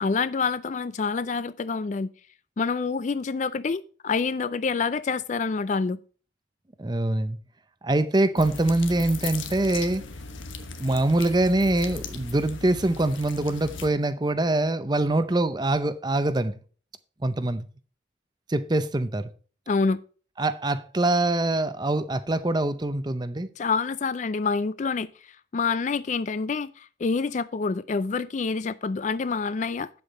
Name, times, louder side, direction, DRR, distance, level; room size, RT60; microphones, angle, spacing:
voice 1, 0.0-2.1 2.6-6.0 19.7-20.0 23.6-25.1 25.5-29.9, left 4 dB, 40° left, 0.3 m, -27 dB
voice 2, 6.8-7.4 7.8-10.0 10.8-16.5 17.2-17.7 18.5-19.3 20.4-23.5, right 2 dB, 20° right, 0.6 m, -24 dB
sound 1, 8.4-13.9, left 4 dB, 80° left, 1.2 m, -38 dB
8.5 x 7.9 x 4.1 m
head